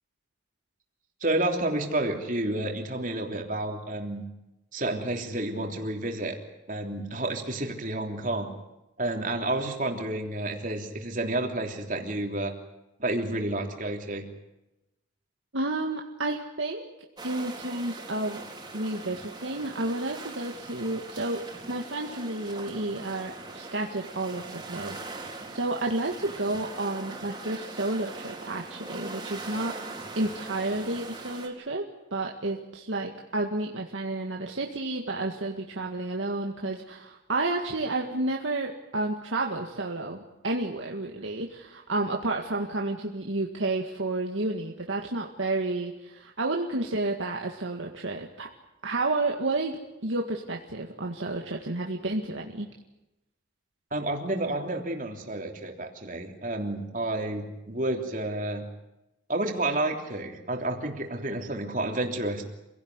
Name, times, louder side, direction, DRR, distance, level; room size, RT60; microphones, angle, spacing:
voice 1, 1.2-4.2 4.7-6.4 6.7-8.5 9.0-12.5 13.0-14.3 53.9-58.7 59.3-62.4, right 1 dB, 45° right, 3 dB, 3.3 m, -30 dB
voice 2, 15.5-16.9 17.2-18.4 18.7-29.8 30.2-31.9 32.1-48.5 48.8-52.7, right 2 dB, 85° right, 1 dB, 2.0 m, -31 dB
sound 1, 17.2-31.5, right 3 dB, 20° right, 3.8 m, -41 dB
27.5 x 17.0 x 9.7 m, 0.95 s
head